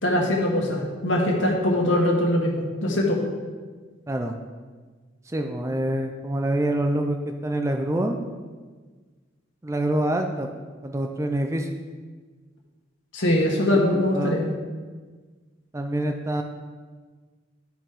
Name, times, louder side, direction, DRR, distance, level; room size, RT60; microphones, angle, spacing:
voice 1, 0.0-3.2 13.1-14.5, left 1 dB, 85° left, -2 dB, 1.9 m, -22 dB
voice 2, 5.3-8.2 9.6-10.5 10.8-11.7 13.9-14.4 15.7-16.4, right 1 dB, 15° right, 4 dB, 0.5 m, -26 dB
12.0 x 5.1 x 3.7 m, 1.4 s
head